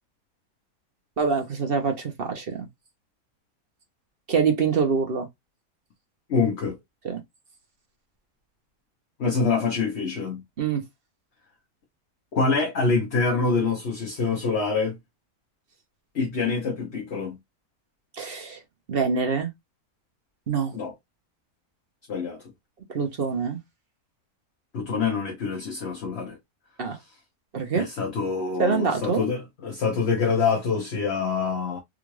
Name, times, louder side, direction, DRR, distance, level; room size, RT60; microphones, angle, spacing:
voice 1, 1.2-2.7 4.3-5.3 7.0-7.2 10.6-10.8 18.1-18.6 18.9-19.5 20.5-20.7 22.9-23.6 26.8-27.0 27.5-27.9 28.6-29.3, right 5 dB, 45° right, 0.9 m, -25 dB
voice 2, 6.3-6.8 9.2-10.4 12.3-14.9 16.1-17.4 20.7-20.9 22.1-22.4 24.7-26.4 27.7-31.8, left 4 dB, 50° left, 1.1 m, -25 dB
3.7 x 2.4 x 3.0 m
omnidirectional pair, 1.6 m